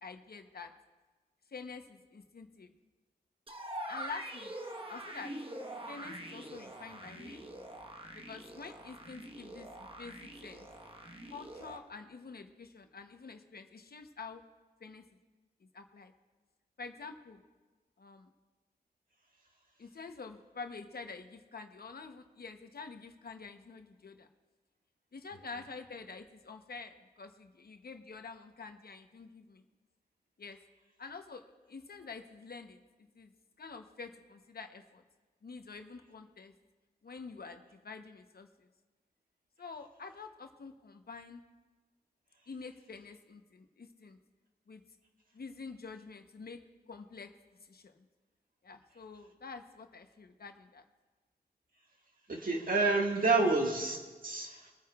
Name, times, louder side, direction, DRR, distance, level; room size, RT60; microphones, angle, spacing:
voice 1, 0.0-0.7 1.5-2.7 3.9-4.5 4.9-5.3 5.9-7.7 8.1-10.7 11.3-14.4 14.8-15.0 15.6-16.1 16.8-17.4 18.0-18.3 19.8-24.3 25.1-29.6 30.4-30.6 31.0-33.3 33.6-35.0 35.4-36.5 37.0-38.7 39.6-41.4 42.5-44.2 44.7-44.8 45.3-46.6 46.9-47.3 47.6-48.1 48.6-50.8 53.3-53.5, left 4 dB, 65° left, 6 dB, 0.9 m, -47 dB
sound 1, 3.5-11.8, right 1 dB, 30° right, 1.2 m, -44 dB
voice 2, 52.3-54.7, right 3 dB, 55° right, 0 dB, 1.8 m, -29 dB
24.0 x 9.3 x 2.4 m, 1.3 s
wide cardioid pair, 70°, 17 cm